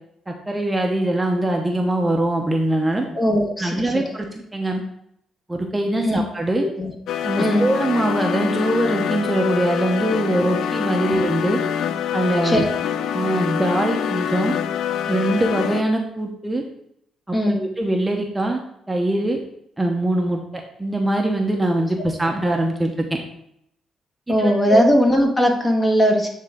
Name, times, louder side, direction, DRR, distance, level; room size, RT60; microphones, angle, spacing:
voice 1, 0.3-3.1 3.6-4.3 4.5-4.8 5.5-6.6 7.2-11.6 12.1-12.7 13.1-14.5 15.1-16.6 17.3-18.6 18.9-19.4 19.8-23.2 24.3-24.8, right 1 dB, 15° right, 2 dB, 0.9 m, -22 dB
voice 2, 3.1-4.2 6.0-6.2 6.6-6.9 7.4-7.6 11.1-11.2 12.4-12.7 17.3-17.6 24.3-26.3, equal, 25° left, 2 dB, 1.4 m, -19 dB
sound 1, 7.1-15.8, left 8 dB, 75° left, 0.3 m, -25 dB
8.8 x 3.6 x 3.6 m, 0.74 s
cardioid pair, 90°, 0 cm